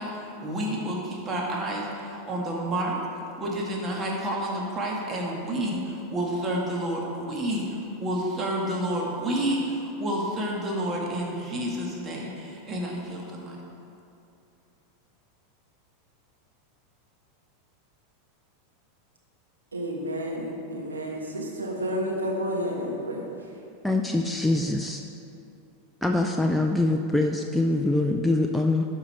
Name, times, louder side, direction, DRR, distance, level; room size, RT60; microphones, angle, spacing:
voice 1, 0.0-3.0 3.4-13.6, right 1 dB, 30° right, -2 dB, 1.9 m, -30 dB
voice 2, 19.7-23.2, equal, 90° right, -1 dB, 1.4 m, -30 dB
voice 3, 23.8-25.0 26.0-28.9, left 2 dB, ahead, 2 dB, 0.5 m, -24 dB
11.5 x 5.6 x 4.3 m, 2.7 s
hypercardioid pair, 95°, 0 cm